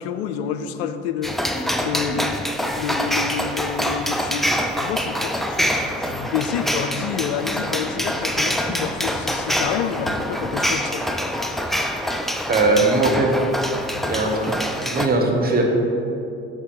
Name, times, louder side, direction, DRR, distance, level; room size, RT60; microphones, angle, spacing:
voice 1, 0.0-1.4 1.8-2.3 2.8-4.5 4.7-11.1, left 7 dB, 75° left, 9 dB, 0.5 m, -28 dB
sound 1, 1.2-15.1, equal, ahead, 0.4 m, -25 dB
voice 2, 12.5-13.3 14.1-15.6, right 2 dB, 30° right, 1 dB, 1.3 m, -20 dB
7.2 x 4.2 x 5.2 m, 2.8 s
hypercardioid pair, 50°, 33 cm